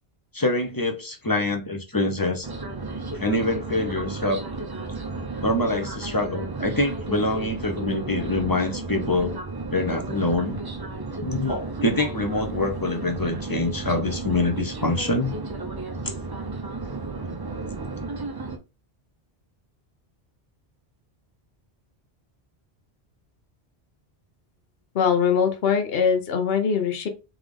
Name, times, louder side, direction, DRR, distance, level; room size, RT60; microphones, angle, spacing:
voice 1, 0.3-2.5 3.1-4.4 5.4-9.4 9.7-10.6 11.2-15.3, left 2 dB, 25° left, 0.6 m, -25 dB
sound 1, 2.4-18.6, right 3 dB, 30° right, 0.5 m, -33 dB
voice 2, 24.9-27.1, left 6 dB, 65° left, 1.0 m, -22 dB
3.6 x 3.6 x 3.6 m
omnidirectional pair, 1.1 m